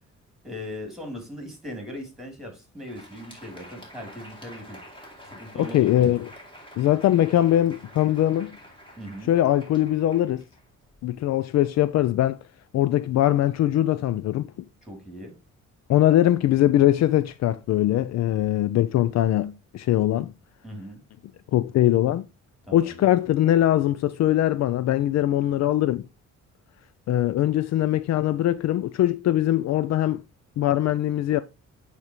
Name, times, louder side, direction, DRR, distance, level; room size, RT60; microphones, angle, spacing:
voice 1, 0.4-4.8 5.3-6.2 9.0-9.3 14.8-15.3 20.6-21.0 22.7-23.1, left 1 dB, ahead, 3.1 m, -39 dB
Crowd, 2.7-11.1, equal, 15° left, 2.7 m, -48 dB
voice 2, 5.6-6.3 6.8-8.6 9.3-10.4 11.0-12.4 12.7-14.5 15.9-20.3 21.5-22.3 22.7-26.0 27.1-30.2 30.6-31.4, left 13 dB, 60° left, 0.4 m, -21 dB
8.8 x 3.6 x 3.0 m
cardioid pair, 90°, 30 cm